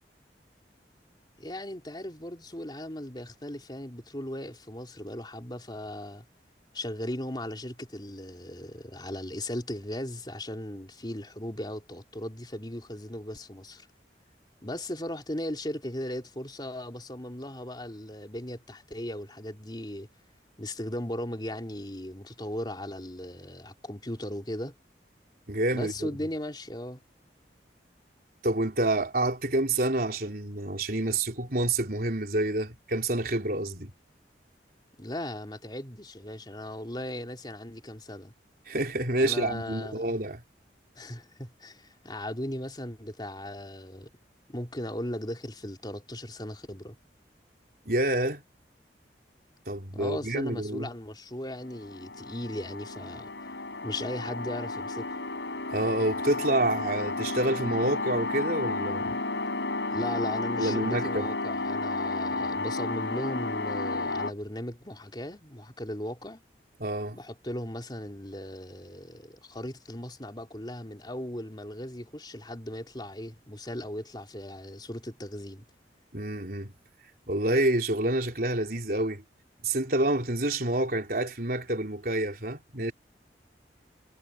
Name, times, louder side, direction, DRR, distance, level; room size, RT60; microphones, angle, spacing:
voice 1, 1.4-6.3 6.7-13.9 14.6-20.1 20.6-24.7 25.7-27.0 35.0-38.3 39.2-40.2 41.0-44.1 44.5-47.0 49.9-53.3 53.8-55.2 59.9-66.4 67.1-75.7, left 1 dB, 25° left, 3.6 m, -37 dB
voice 2, 25.5-26.1 28.4-33.9 38.7-40.4 47.8-48.4 49.7-50.9 55.7-59.2 60.6-61.3 66.8-67.2 76.1-76.7 77.3-79.2 79.6-82.9, right 1 dB, 55° right, 4.2 m, -28 dB
sound 1, 51.6-64.3, left 2 dB, 90° left, 6.3 m, -32 dB
head